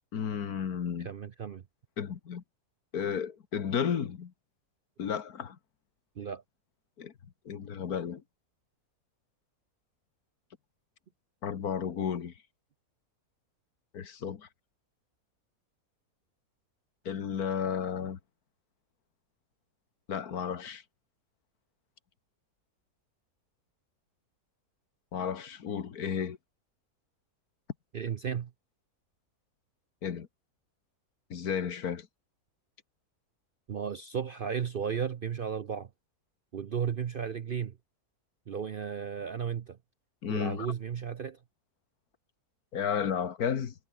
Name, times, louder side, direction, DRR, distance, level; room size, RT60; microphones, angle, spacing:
voice 1, 0.1-1.1 2.0-2.4 2.9-4.3 5.0-5.6 7.0-7.1 7.5-8.2 11.4-12.3 13.9-14.5 17.1-18.2 20.1-20.8 25.1-26.4 30.0-30.3 31.3-32.1 40.2-40.7 42.7-43.7, left 7 dB, 75° left, 1.9 m, -33 dB
voice 2, 1.0-1.6 6.2-6.4 27.9-28.5 33.7-35.9 36.5-37.8 38.5-39.8 40.3-41.4, right 7 dB, 55° right, 0.6 m, -34 dB
omnidirectional pair, 1.6 m